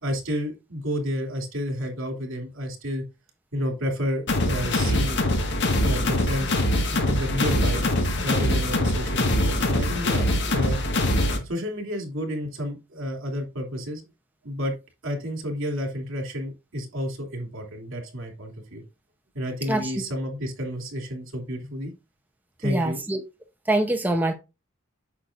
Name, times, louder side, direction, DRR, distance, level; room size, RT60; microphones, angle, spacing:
voice 1, 0.0-3.0 3.5-5.2 5.8-6.6 6.9-7.8 8.2-10.8 11.4-14.0 14.4-14.7 15.0-18.8 19.3-21.9 22.6-23.0, equal, 65° right, 2.9 m, -30 dB
sound 1, 4.3-11.4, left 1 dB, 60° left, 1.7 m, -23 dB
voice 2, 22.6-23.2 23.7-24.3, right 1 dB, 10° right, 0.8 m, -24 dB
8.5 x 6.5 x 2.5 m
head